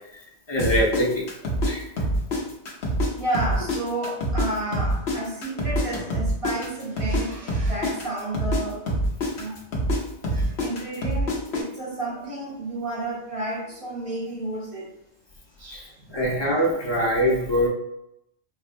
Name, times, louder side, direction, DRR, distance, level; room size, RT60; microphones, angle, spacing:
voice 1, 0.5-1.3 1.6-1.8 15.7-17.7, equal, 30° left, -3 dB, 0.7 m, -23 dB
sound 1, 0.6-3.1 3.3-7.2 7.5-11.6, equal, 70° left, 1.0 m, -25 dB
voice 2, 1.5-2.2 2.8-8.9 9.4-9.5 10.3-14.9 15.6-15.9, right 2 dB, 35° right, -3 dB, 0.7 m, -32 dB
4.3 x 2.1 x 2.5 m, 0.81 s
omnidirectional pair, 1.2 m